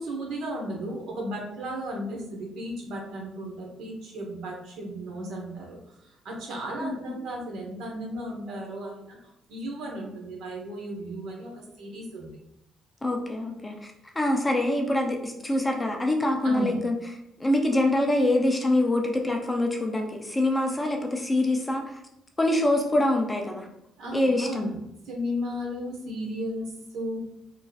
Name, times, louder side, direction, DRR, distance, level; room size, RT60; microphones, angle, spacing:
voice 1, 0.0-9.2 9.5-12.3 16.4-16.8 24.0-27.2, equal, 70° right, 0 dB, 1.0 m, -35 dB
voice 2, 6.8-7.1 13.0-13.7 14.2-16.9 17.4-21.8 22.4-23.7 24.1-24.7, left 1 dB, 10° left, 2 dB, 0.4 m, -25 dB
3.9 x 3.1 x 2.3 m, 0.82 s
cardioid pair, 150°, 0 cm